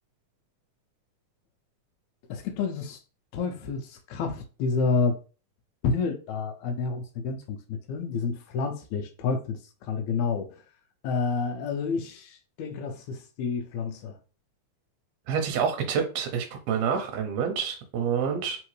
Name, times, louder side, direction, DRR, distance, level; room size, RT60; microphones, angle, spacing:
voice 1, 2.3-3.0 3.3-5.2 5.8-10.5 11.0-14.2, left 4 dB, 80° left, 1.9 m, -29 dB
voice 2, 15.3-18.6, right 7 dB, 70° right, 1.7 m, -28 dB
4.2 x 3.6 x 3.2 m
omnidirectional pair, 3.5 m